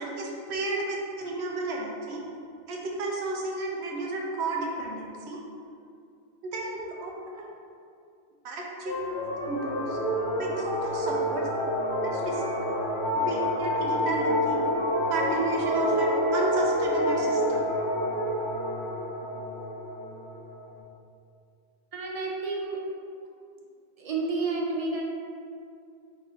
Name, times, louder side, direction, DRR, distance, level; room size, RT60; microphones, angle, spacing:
voice 1, 0.0-2.2 2.7-5.4 6.4-7.5 8.4-9.0 9.4-10.0 10.4-11.5 12.0-12.4 13.2-14.7 15.1-17.6, right 2 dB, 90° right, -1 dB, 1.0 m, -32 dB
sound 1, 8.9-20.7, equal, 55° left, 0.9 m, -28 dB
voice 2, 21.9-22.8 24.0-25.0, right 3 dB, 45° right, -1 dB, 0.5 m, -30 dB
3.6 x 3.0 x 4.3 m, 2.5 s
omnidirectional pair, 1.1 m